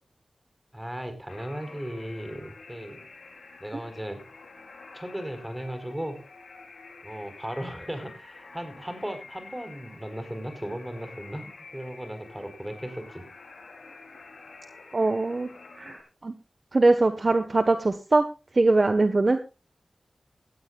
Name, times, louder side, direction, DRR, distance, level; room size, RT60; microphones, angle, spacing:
voice 1, 0.7-3.0 3.6-4.2 4.9-6.2 7.0-13.2, right 1 dB, 10° right, 8 dB, 4.7 m, -36 dB
sound 1, 1.3-16.0, left 3 dB, 90° left, 4.5 m, -48 dB
voice 2, 14.9-15.5 15.8-16.3 16.7-18.3 18.5-19.4, right 2 dB, 45° right, 9 dB, 1.4 m, -22 dB
18.0 x 14.0 x 2.5 m, 0.31 s
wide cardioid pair, 75°, 0 cm